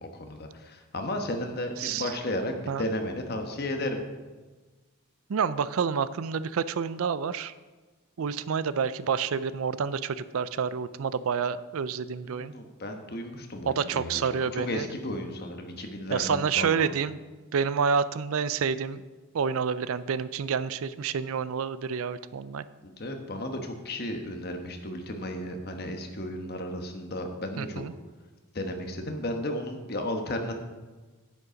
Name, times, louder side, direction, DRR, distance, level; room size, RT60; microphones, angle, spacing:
voice 1, 0.0-4.0 12.2-16.9 22.8-27.8 28.5-30.5, left 1 dB, 45° left, 4 dB, 1.1 m, -34 dB
voice 2, 1.8-2.1 2.7-2.9 5.3-7.5 8.2-12.5 13.7-14.9 16.1-17.2 17.5-19.0 19.3-22.7 27.6-27.9, right 6 dB, 70° right, 16 dB, 0.4 m, -28 dB
9.5 x 8.3 x 5.1 m, 1.3 s
head